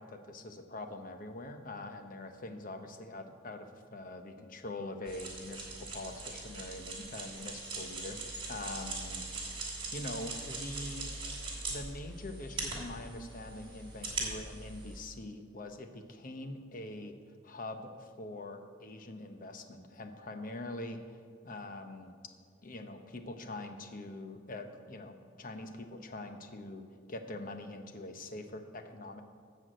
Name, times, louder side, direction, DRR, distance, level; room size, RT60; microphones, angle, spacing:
voice 1, 0.0-8.2 8.5-9.2 9.9-17.2 17.4-21.0 21.4-22.2 22.6-29.2, left 2 dB, 50° left, 6 dB, 0.9 m, -44 dB
sound 1, 5.1-15.0, right 3 dB, 30° right, 2.6 m, -41 dB
13.5 x 4.8 x 7.7 m, 2.1 s
head